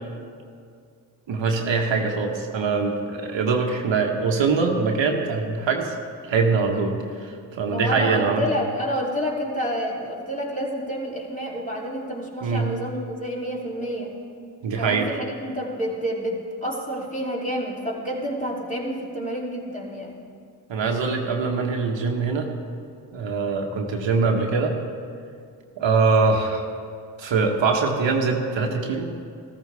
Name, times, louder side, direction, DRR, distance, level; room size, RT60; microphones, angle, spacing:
voice 1, 1.3-5.9 6.3-8.4 12.4-12.7 14.6-15.1 20.7-22.5 23.1-24.7 25.8-26.6 27.2-29.1, right 4 dB, 65° right, 2 dB, 1.3 m, -23 dB
voice 2, 7.7-14.1 14.7-20.2, equal, 15° left, -3 dB, 3.0 m, -29 dB
14.0 x 13.5 x 3.4 m, 2.3 s
supercardioid pair, 45°, 49 cm